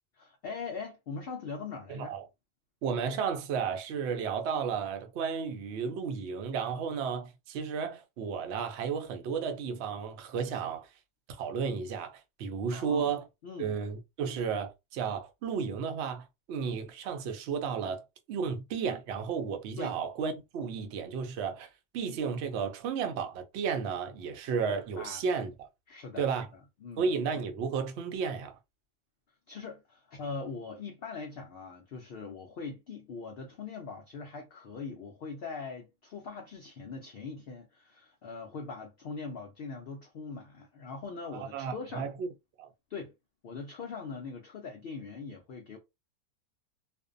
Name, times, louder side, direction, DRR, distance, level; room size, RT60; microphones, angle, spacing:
voice 1, 0.1-2.1 12.7-13.1 13.4-13.8 19.8-20.0 25.0-25.2 25.9-26.3 26.8-27.1 29.5-42.1 42.9-43.1 43.4-45.8, left 4 dB, 70° left, 0.5 m, -41 dB
voice 2, 1.9-2.3 2.8-10.9 11.3-13.2 13.6-21.7 21.9-25.5 26.2-26.5 27.0-28.5 41.3-42.3 42.6-42.7, right 6 dB, 65° right, 0.7 m, -33 dB
2.5 x 2.1 x 2.4 m
omnidirectional pair, 1.5 m